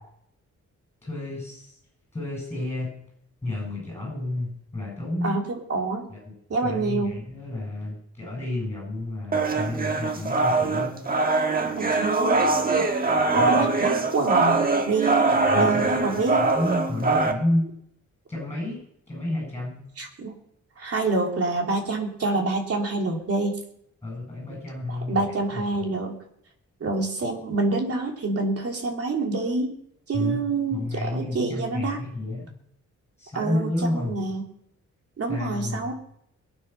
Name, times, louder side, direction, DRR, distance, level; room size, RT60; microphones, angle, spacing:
voice 1, 1.0-1.8 2.1-2.9 3.4-5.4 6.1-6.2 6.6-11.1 13.1-13.5 15.3-16.0 16.3-17.6 18.3-18.8 19.1-19.8 24.0-25.2 25.5-25.9 30.1-30.4 30.7-32.5 33.2-34.2 35.3-36.0, left 1 dB, 10° left, -2 dB, 7.9 m, -30 dB
voice 2, 5.2-6.1 6.5-7.2 11.8-13.0 13.3-16.5 20.0-20.4 20.8-23.6 24.9-26.2 26.8-29.7 30.1-32.0 33.3-34.5 35.2-35.9, right 3 dB, 50° right, 1 dB, 3.1 m, -27 dB
sound 1, 9.3-17.3, right 3 dB, 30° right, 1.4 m, -23 dB
22.5 x 9.0 x 5.8 m, 0.74 s
wide cardioid pair, 170°, 30 cm